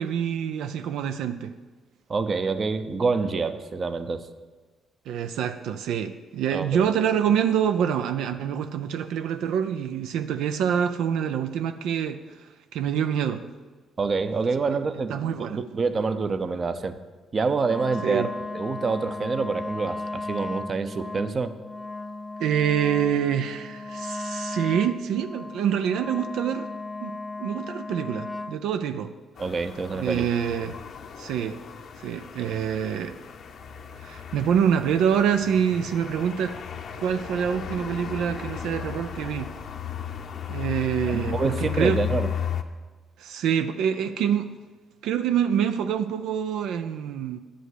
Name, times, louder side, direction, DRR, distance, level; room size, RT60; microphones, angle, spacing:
voice 1, 0.0-1.5 5.1-12.2 12.7-13.4 14.7-14.8 15.1-15.6 18.0-18.3 22.4-26.7 27.0-27.1 27.4-29.1 29.9-30.8 31.2-31.6 32.0-33.2 34.0-36.6 37.0-39.5 40.5-42.0 43.2-44.5 45.0-47.4, right 8 dB, 85° right, 9 dB, 0.4 m, -26 dB
voice 2, 2.1-4.3 6.5-6.8 14.0-15.1 15.4-17.0 17.3-18.3 18.5-21.5 29.4-30.3 41.1-42.3, right 4 dB, 40° right, 11 dB, 0.7 m, -26 dB
Wind instrument woodwind instrument, 17.6-28.6, left 3 dB, 10° left, 0.6 m, -36 dB
sound 1, 29.4-42.6, left 9 dB, 60° left, 0.7 m, -35 dB
10.0 x 5.1 x 8.0 m, 1.3 s
cardioid pair, 90°, 0 cm